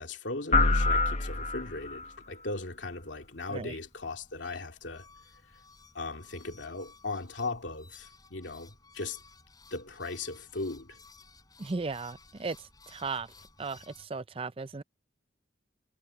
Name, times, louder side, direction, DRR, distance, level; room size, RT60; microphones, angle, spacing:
voice 1, 0.0-5.1 5.3-5.6 5.9-9.2 9.7-11.0, left 3 dB, 85° left, 2.6 m, -38 dB
sound 1, 0.5-2.1, left 3 dB, 40° left, 1.1 m, -25 dB
sound 2, 2.8-14.1, left 4 dB, 20° left, 7.9 m, -57 dB
voice 2, 11.6-12.6 12.9-13.3 13.6-13.8 14.1-14.8, right 4 dB, 30° right, 0.5 m, -35 dB
head